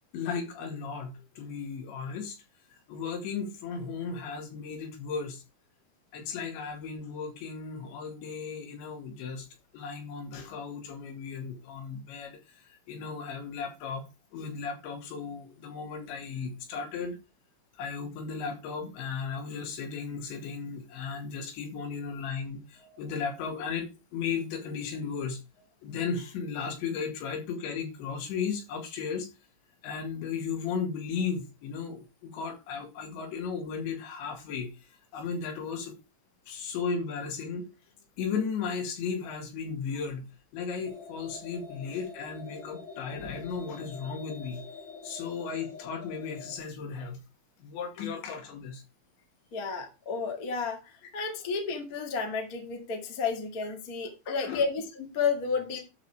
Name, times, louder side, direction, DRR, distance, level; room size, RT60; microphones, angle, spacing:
voice 1, 0.1-2.4 2.7-5.4 6.1-9.5 9.7-14.1 14.3-17.2 17.8-25.4 25.8-29.3 29.8-34.7 35.1-35.9 36.5-37.7 38.2-40.3 40.5-44.6 45.0-47.2 47.6-48.8 54.3-54.6, left 5 dB, 75° left, 4.4 m, -35 dB
sound 1, 40.8-46.6, left 4 dB, 50° left, 3.5 m, -46 dB
voice 2, 49.5-55.8, left 5 dB, 30° left, 1.6 m, -32 dB
12.5 x 4.8 x 4.8 m
omnidirectional pair, 5.2 m